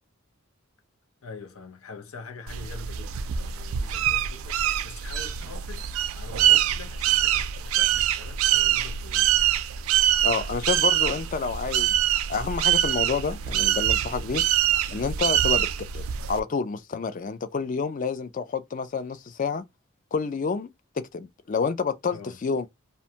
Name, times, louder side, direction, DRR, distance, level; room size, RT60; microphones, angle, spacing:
voice 1, 1.2-9.4 22.1-22.4, left 4 dB, 80° left, 0.7 m, -44 dB
sound 1, 2.5-16.4, right 11 dB, 75° right, 0.3 m, -24 dB
voice 2, 10.2-12.0 12.3-14.4 14.9-15.7 15.9-19.6 20.1-20.7 21.0-22.7, left 5 dB, 35° left, 0.3 m, -29 dB
2.5 x 2.2 x 2.8 m
head